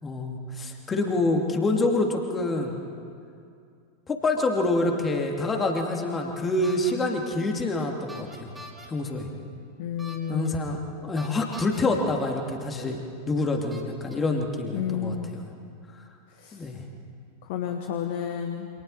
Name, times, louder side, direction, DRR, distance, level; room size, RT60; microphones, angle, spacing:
voice 1, 0.0-2.8 4.1-8.5 8.9-9.3 10.3-15.4 16.5-16.8, left 2 dB, 20° left, 2 dB, 2.7 m, -27 dB
sound 1, 6.6-6.9 8.1-8.9 10.0-10.5 11.2-11.8 12.9-13.0 13.7-14.1, right 1 dB, 10° right, 3.3 m, -43 dB
voice 2, 9.8-10.8 14.7-15.4 16.3-16.6 17.4-18.7, left 8 dB, 50° left, 5 dB, 1.6 m, -31 dB
29.0 x 26.5 x 4.2 m, 2.4 s
figure-of-eight pair, 90°, 0 cm